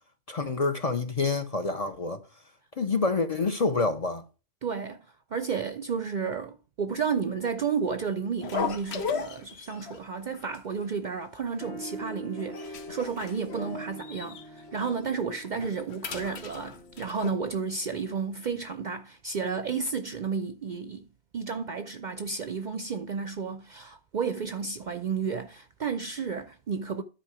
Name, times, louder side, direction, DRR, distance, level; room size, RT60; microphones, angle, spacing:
voice 1, 0.3-2.2 2.8-4.2, left 3 dB, 40° left, 0.6 m, -27 dB
voice 2, 4.6-5.1 5.3-21.1 21.3-27.0, right 5 dB, 55° right, 0.5 m, -32 dB
sound 1, 8.4-10.0 10.3-10.6 10.8-10.9 11.5-12.0 12.4-14.4 14.8-14.9 15.4-17.3, left 6 dB, 65° left, 1.1 m, -36 dB
sound 2, 11.6-18.5, right 1 dB, 85° left, 1.6 m, -44 dB
10.0 x 4.3 x 4.8 m
omnidirectional pair, 1.2 m